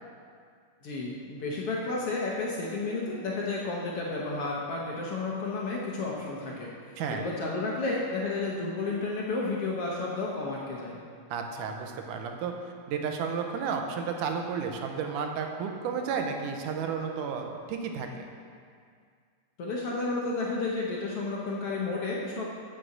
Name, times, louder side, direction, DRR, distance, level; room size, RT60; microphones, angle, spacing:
voice 1, 0.8-6.7 7.1-11.0 19.6-22.4, left 3 dB, 75° left, -3 dB, 1.3 m, -32 dB
voice 2, 11.3-12.5 12.9-18.3, right 6 dB, 75° right, 3 dB, 2.2 m, -32 dB
8.4 x 6.2 x 7.8 m, 2.2 s
omnidirectional pair, 4.0 m